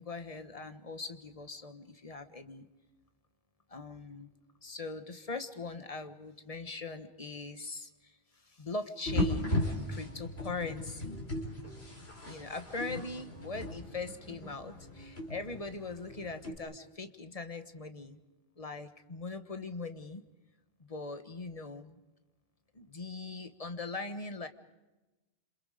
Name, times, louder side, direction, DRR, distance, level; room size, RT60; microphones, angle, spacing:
voice 1, 0.0-2.7 3.7-4.3 4.6-8.1 8.5-9.6 9.9-11.3 12.3-18.2 18.6-20.2 20.9-22.0 22.7-24.5, left 3 dB, 35° left, 9 dB, 1.4 m, -41 dB
sound 1, 9.1-16.6, left 1 dB, 85° left, 4.2 m, -37 dB
27.5 x 27.0 x 5.1 m, 1.1 s
omnidirectional pair, 1.0 m